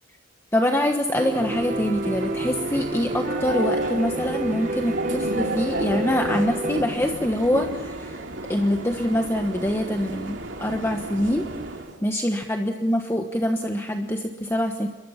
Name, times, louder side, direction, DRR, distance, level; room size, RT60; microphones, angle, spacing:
voice 1, 0.5-8.2 8.5-11.4 12.0-14.9, left 1 dB, 15° left, 4 dB, 1.2 m, -24 dB
sound 1, 1.1-12.0, right 1 dB, 70° right, 2.8 m, -32 dB
Piano, 1.2-6.8, right 1 dB, 40° right, 1.1 m, -30 dB
28.0 x 22.5 x 5.8 m, 1.2 s
head